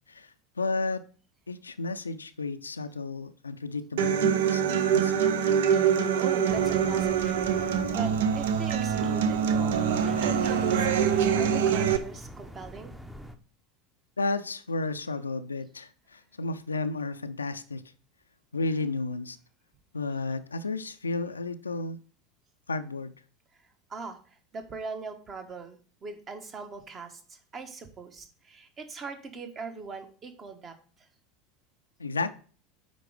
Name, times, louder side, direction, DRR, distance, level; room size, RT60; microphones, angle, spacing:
voice 1, 0.6-1.0 1.5-5.3 14.2-17.8 18.5-19.4 19.9-22.0 22.7-23.1 32.0-32.3, left 3 dB, 85° left, 0.4 m, -32 dB
Human voice / Acoustic guitar, 4.0-12.0, right 7 dB, 65° right, 0.6 m, -24 dB
voice 2, 6.2-9.8 10.0-11.1 11.4-12.9 23.9-24.2 24.5-30.8, right 4 dB, 30° right, 1.3 m, -40 dB
sound 1, 6.5-13.4, equal, 10° right, 0.8 m, -43 dB
9.1 x 3.9 x 5.0 m
figure-of-eight pair, 80°, 0 cm